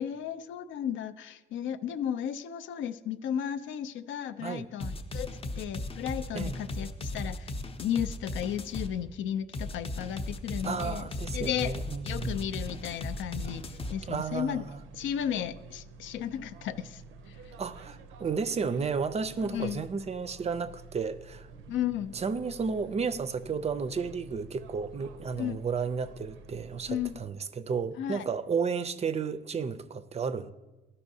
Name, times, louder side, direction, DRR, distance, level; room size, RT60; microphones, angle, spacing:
voice 1, 0.0-5.3 5.6-7.5 7.8-11.8 12.0-14.6 14.9-17.4 19.4-19.8 21.7-22.1 25.4-25.6 26.9-27.2 28.0-28.3, left 9 dB, 75° left, 0.5 m, -34 dB
sound 1, 4.8-8.9 9.5-13.9, left 2 dB, 30° left, 0.6 m, -36 dB
voice 2, 6.3-6.6 10.6-12.4 14.1-14.8 17.6-21.5 22.1-30.5, right 5 dB, 35° right, 0.4 m, -32 dB
sound 2, 12.3-27.2, right 4 dB, 90° right, 0.5 m, -49 dB
12.5 x 5.5 x 2.7 m
cardioid pair, 90°, 20 cm